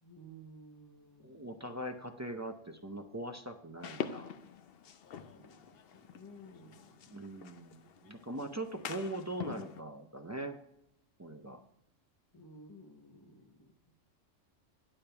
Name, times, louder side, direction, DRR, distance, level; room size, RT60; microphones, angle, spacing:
voice 1, 0.0-1.6 5.2-7.3 12.3-13.9, right 1 dB, 20° left, 6 dB, 0.8 m, -55 dB
voice 2, 1.2-4.3 7.1-10.6 11.2-11.6, right 1 dB, 25° right, 4 dB, 0.4 m, -41 dB
sound 1, 3.8-9.8, left 7 dB, 60° left, 0.7 m, -45 dB
10.0 x 8.5 x 3.4 m, 0.74 s
omnidirectional pair, 1.3 m